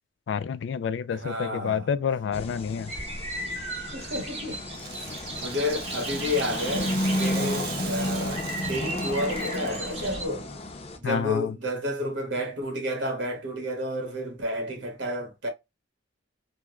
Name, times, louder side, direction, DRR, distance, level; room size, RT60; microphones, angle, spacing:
voice 1, 0.3-2.9 11.0-11.6, left 7 dB, 75° left, 0.3 m, -28 dB
voice 2, 1.1-1.9 3.9-4.6 4.9-8.4 8.7-10.5 11.0-15.5, left 1 dB, 85° right, 1.2 m, -31 dB
sound 1, 2.3-11.0, left 1 dB, 35° left, 0.6 m, -32 dB
sound 2, 2.9-10.3, right 2 dB, 35° right, 1.1 m, -37 dB
Rattle (instrument), 4.6-10.1, right 6 dB, 60° right, 0.7 m, -40 dB
3.5 x 2.1 x 2.9 m
head